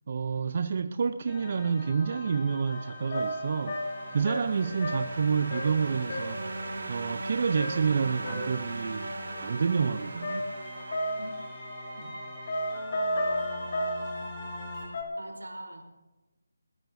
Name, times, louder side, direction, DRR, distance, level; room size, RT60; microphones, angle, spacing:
voice 1, 0.1-10.5, right 6 dB, 40° right, 0.6 m, -29 dB
sound 1, 1.3-14.9, left 1 dB, 15° left, 7.1 m, -42 dB
sound 2, 2.7-2.8 3.1-5.2 5.5-5.8 6.1-6.5 7.6-8.6 10.2-11.4 12.5-14.1 14.9-15.0, equal, 40° left, 3.2 m, -32 dB
sound 3, 3.4-12.0, right 3 dB, 60° right, 1.5 m, -40 dB
voice 2, 15.2-15.8, right 1 dB, 85° right, 3.7 m, -42 dB
21.0 x 20.0 x 2.6 m
figure-of-eight pair, 155°, 0 cm